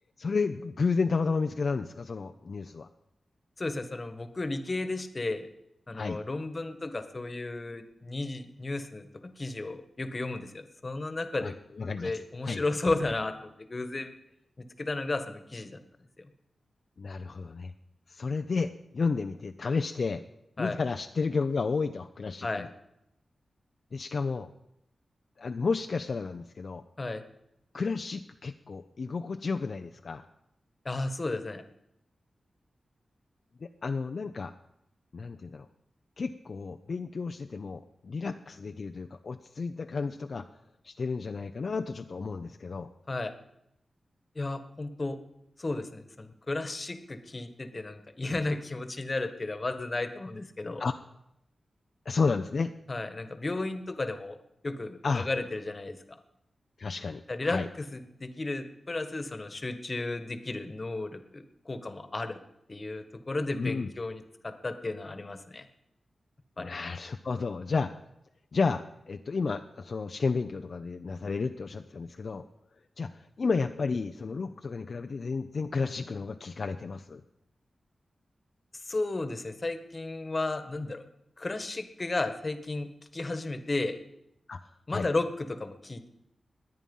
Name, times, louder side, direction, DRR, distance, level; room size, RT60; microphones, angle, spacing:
voice 1, 0.2-2.9 5.9-6.2 11.4-12.1 12.4-12.6 17.0-17.7 18.1-20.2 20.6-22.7 23.9-24.5 25.4-26.8 27.7-30.3 33.6-34.5 35.1-35.7 36.2-40.5 40.8-42.9 50.8-50.9 52.1-52.7 55.0-55.3 56.8-57.7 63.5-63.9 66.6-68.0 68.5-72.4 73.0-77.2 84.5-85.1, left 4 dB, 60° left, 6 dB, 0.6 m, -32 dB
voice 2, 3.6-5.5 5.9-11.6 12.0-14.1 14.8-15.8 16.2-16.3 20.6-20.8 22.4-22.7 27.0-27.2 30.8-31.6 43.1-43.3 44.3-45.2 45.6-50.8 52.9-54.4 54.6-56.2 57.3-62.4 62.7-65.7 66.6-66.7 78.8-81.0 81.4-84.0 84.9-86.1, left 2 dB, 35° left, 9 dB, 1.5 m, -34 dB
21.5 x 9.0 x 5.5 m, 0.82 s
cardioid pair, 70°, 0 cm